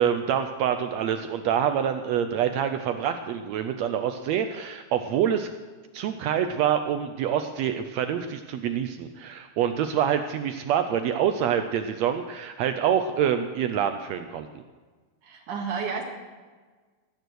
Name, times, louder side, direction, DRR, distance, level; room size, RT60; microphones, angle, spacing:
voice 1, 0.0-5.5 5.9-14.5, right 9 dB, 85° right, 8 dB, 1.5 m, -26 dB
voice 2, 15.2-16.0, right 5 dB, 70° right, 1 dB, 3.4 m, -31 dB
18.0 x 9.4 x 6.3 m, 1.4 s
omnidirectional pair, 3.8 m